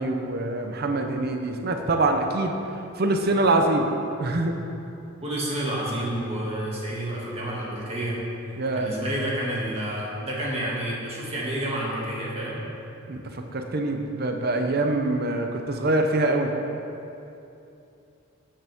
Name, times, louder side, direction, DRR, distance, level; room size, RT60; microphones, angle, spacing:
voice 1, 0.0-2.6 3.0-3.9 4.2-4.6 8.6-8.9 13.1-16.5, right 2 dB, 50° right, 4 dB, 0.7 m, -24 dB
voice 2, 5.2-8.2 8.8-12.6, right 1 dB, 30° right, -5 dB, 2.1 m, -29 dB
12.0 x 8.6 x 3.6 m, 2.8 s
head